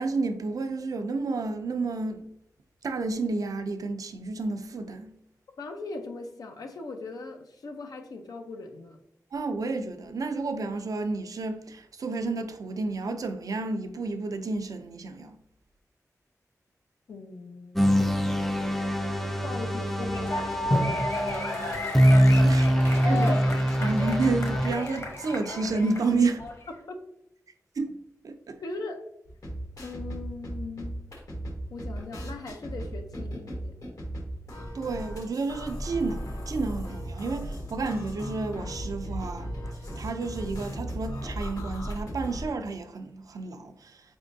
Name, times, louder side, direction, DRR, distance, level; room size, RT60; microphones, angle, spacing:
voice 1, 0.0-2.3 2.8-5.1 9.3-15.4 22.4-23.3 23.8-26.4 27.8-27.9 28.2-28.6 34.7-39.5 40.0-44.0, right 3 dB, 70° right, 0.5 m, -30 dB
voice 2, 5.6-9.0 17.1-18.0 19.4-20.8 22.5-22.7 23.1-23.6 26.9-27.0 28.6-29.0 29.8-31.0 31.7-33.8, left 3 dB, 90° left, 0.6 m, -39 dB
sound 1, 17.8-24.7, equal, 5° left, 0.4 m, -24 dB
sound 2, 20.0-26.6, left 1 dB, 50° left, 1.0 m, -31 dB
sound 3, 29.3-42.5, equal, 70° left, 1.1 m, -36 dB
4.3 x 3.4 x 2.6 m
wide cardioid pair, 80°, 6 cm